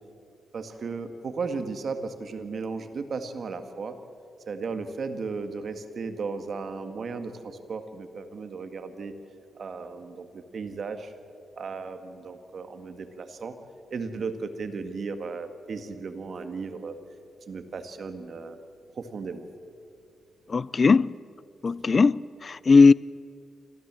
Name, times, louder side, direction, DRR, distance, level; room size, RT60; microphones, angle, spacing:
voice 1, 0.5-3.9 4.5-9.1 9.6-11.1 11.6-13.5 13.9-17.0 17.5-18.6 19.0-19.5, right 4 dB, 60° right, 1.9 m, -35 dB
voice 2, 20.5-21.2 21.6-22.9, left 4 dB, 40° left, 0.4 m, -18 dB
26.0 x 15.5 x 7.6 m
cardioid pair, 85°, 0 cm